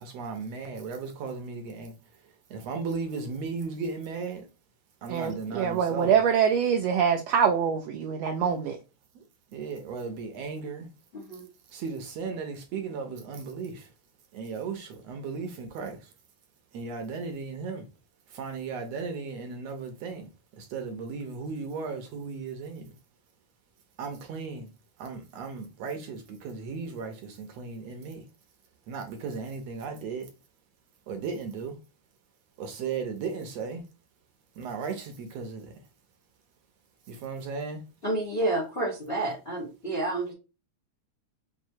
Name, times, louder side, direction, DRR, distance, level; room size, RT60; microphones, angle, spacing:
voice 1, 0.0-1.9 2.5-4.4 5.0-6.1 9.5-10.9 11.7-13.8 14.3-16.0 16.7-17.9 18.3-20.3 20.6-22.8 24.0-24.7 25.0-28.2 28.9-30.3 31.1-31.8 32.6-33.8 34.6-35.7 37.1-37.8, right 5 dB, 70° right, 1.7 m, -36 dB
voice 2, 5.1-8.8, right 7 dB, 90° right, 1.4 m, -24 dB
voice 3, 11.1-11.5 38.0-40.3, right 2 dB, 65° left, 0.5 m, -29 dB
6.2 x 2.6 x 2.7 m
omnidirectional pair, 3.5 m